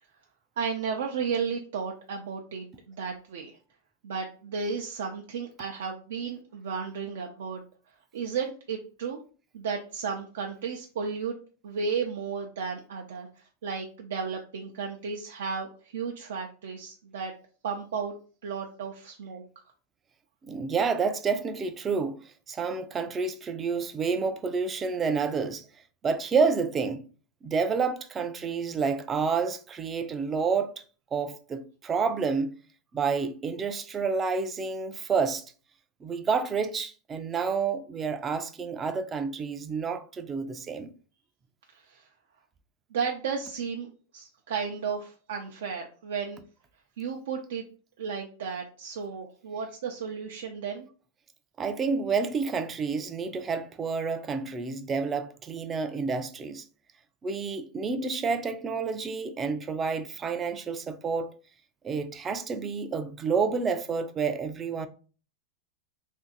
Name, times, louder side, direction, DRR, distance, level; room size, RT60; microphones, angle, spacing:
voice 1, 0.6-3.6 4.0-7.6 8.1-9.2 9.5-11.3 11.6-17.3 17.6-18.1 18.4-19.4 41.7-42.1 42.9-43.9 44.1-46.4 47.0-47.6 48.0-50.9, right 6 dB, 80° right, 0.5 m, -33 dB
voice 2, 20.5-22.2 22.5-25.7 26.0-27.0 27.4-30.7 31.1-32.5 32.9-35.4 36.0-40.9 51.6-56.6 57.2-61.3 61.8-64.9, right 5 dB, 15° right, 0.3 m, -29 dB
2.6 x 2.5 x 3.8 m
supercardioid pair, 160°, 0 cm